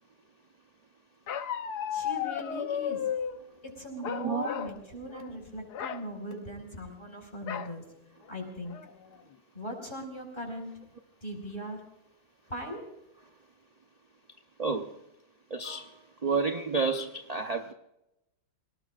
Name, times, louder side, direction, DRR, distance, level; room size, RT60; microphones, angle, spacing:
Bark, 1.3-3.4 4.0-4.8 5.1-5.3 5.7-6.0 7.5-7.7 8.3-8.4 8.7-9.1, left 9 dB, 65° left, 1.4 m, -34 dB
voice 1, 1.9-3.1 3.6-7.8 8.3-8.8 9.5-10.8 11.2-11.8 12.5-12.8, equal, 25° left, 3 dB, 5.3 m, -39 dB
voice 2, 14.6-14.9 15.5-15.9 16.2-17.7, right 4 dB, 35° right, 5 dB, 0.6 m, -30 dB
29.0 x 18.5 x 2.5 m, 0.90 s
omnidirectional pair, 2.0 m